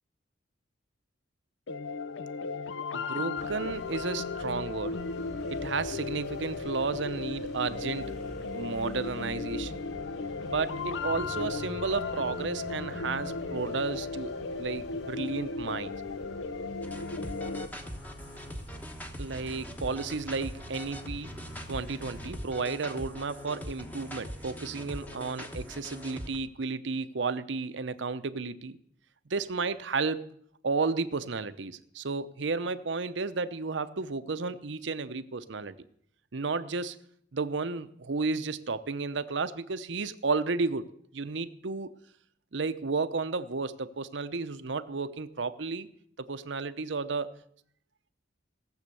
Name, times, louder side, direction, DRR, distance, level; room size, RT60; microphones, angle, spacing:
sound 1, 1.7-17.7, left 4 dB, 75° left, 0.6 m, -36 dB
voice 1, 2.9-5.0 5.5-8.2 8.5-9.7 10.5-15.9 19.2-21.4 21.7-28.8 29.3-30.3 30.6-35.8 36.3-37.0 37.3-41.9 42.5-45.9 46.2-47.3, right 4 dB, 65° right, 12 dB, 0.7 m, -32 dB
sound 2, 3.4-22.4, equal, 60° left, 3.9 m, -47 dB
sound 3, 16.8-26.4, equal, 10° left, 1.1 m, -42 dB
17.5 x 7.4 x 6.8 m, 0.68 s
head